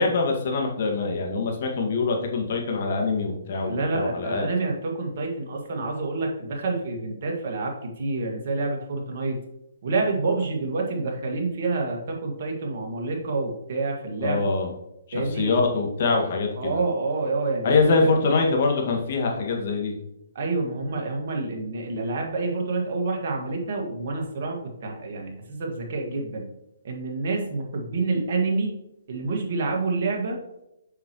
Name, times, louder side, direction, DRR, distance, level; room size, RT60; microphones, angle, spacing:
voice 1, 0.0-4.5 14.2-14.7 15.1-16.8 17.6-19.9, left 3 dB, 55° left, 2 dB, 1.9 m, -24 dB
voice 2, 3.5-9.4 9.8-14.5 15.1-15.6 16.6-18.1 20.4-26.5 26.8-28.8 29.1-30.4, right 3 dB, 55° right, 1 dB, 1.9 m, -28 dB
7.2 x 6.0 x 3.1 m, 0.86 s
hypercardioid pair, 135°, 0 cm